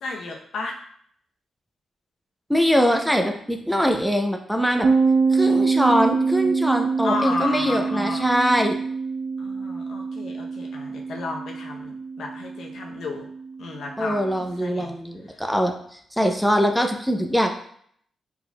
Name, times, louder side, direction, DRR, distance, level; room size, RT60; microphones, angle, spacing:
voice 1, 0.0-0.8 7.0-8.3 9.4-13.3 13.6-14.9, left 3 dB, 75° left, 1 dB, 0.7 m, -33 dB
voice 2, 2.5-4.9 5.3-8.8 14.0-15.7 16.1-17.5, equal, ahead, 3 dB, 0.6 m, -22 dB
sound 1, 4.8-14.3, right 4 dB, 55° right, 0.6 m, -25 dB
4.6 x 4.0 x 2.3 m, 0.64 s
cardioid pair, 60°, 0 cm